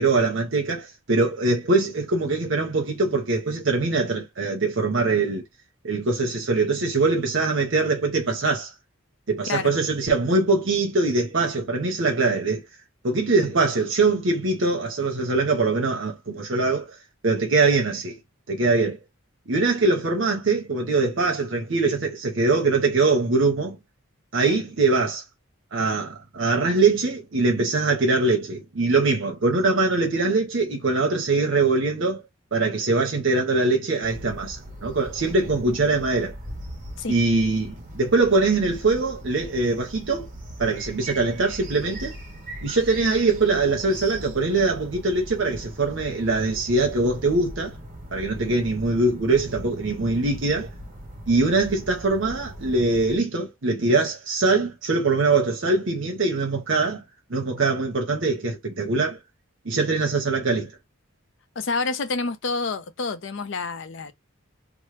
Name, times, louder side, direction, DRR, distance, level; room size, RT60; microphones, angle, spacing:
voice 1, 0.0-5.4 5.8-8.7 9.3-12.6 13.0-16.9 17.2-18.2 18.5-19.0 19.5-23.8 24.3-25.2 25.7-32.2 32.5-36.3 37.1-40.3 40.6-42.1 42.6-47.7 48.1-50.7 51.3-57.0 57.3-59.2 59.6-60.7, right 3 dB, 60° right, 0.8 m, -22 dB
sound 1, 34.0-53.2, right 1 dB, 35° right, 1.1 m, -39 dB
voice 2, 61.6-64.1, left 4 dB, 55° left, 0.5 m, -28 dB
3.0 x 2.0 x 3.2 m
head